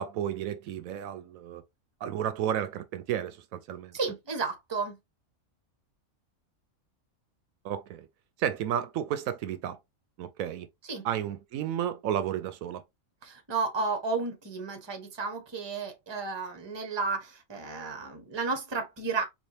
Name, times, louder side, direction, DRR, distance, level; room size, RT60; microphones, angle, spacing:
voice 1, 0.0-1.6 2.0-3.9 7.6-8.1 8.4-9.8 10.2-10.7 11.0-12.8, right 10 dB, 80° right, 1.0 m, -32 dB
voice 2, 3.9-5.0 10.8-11.1 13.2-19.2, right 4 dB, 20° right, 0.8 m, -32 dB
4.2 x 2.5 x 3.2 m
omnidirectional pair, 1.4 m